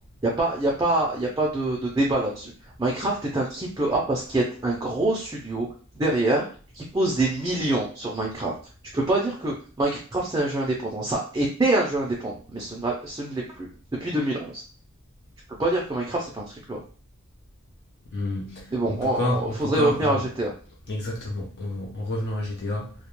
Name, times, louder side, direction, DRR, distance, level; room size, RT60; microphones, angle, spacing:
voice 1, 0.2-2.5 2.8-5.7 6.0-6.5 6.7-8.5 8.9-13.7 14.0-14.6 15.6-16.8 18.7-20.5, right 2 dB, 15° right, -2 dB, 0.4 m, -25 dB
voice 2, 18.1-20.2 20.9-22.9, left 1 dB, 50° left, -3 dB, 0.6 m, -29 dB
2.2 x 2.1 x 2.9 m, 0.40 s
head